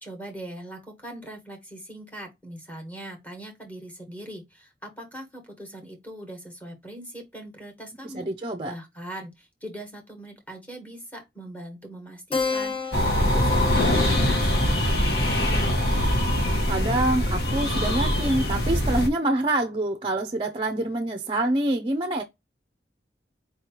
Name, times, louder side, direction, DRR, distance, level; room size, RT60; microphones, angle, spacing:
voice 1, 0.0-15.8, right 1 dB, 10° left, 1.5 m, -41 dB
voice 2, 8.1-8.7 16.7-22.2, right 1 dB, 30° right, 0.5 m, -26 dB
Keyboard (musical), 12.3-17.3, left 4 dB, 30° left, 0.9 m, -34 dB
sound 1, 12.9-19.1, equal, 65° left, 1.7 m, -23 dB
4.7 x 3.1 x 2.9 m
head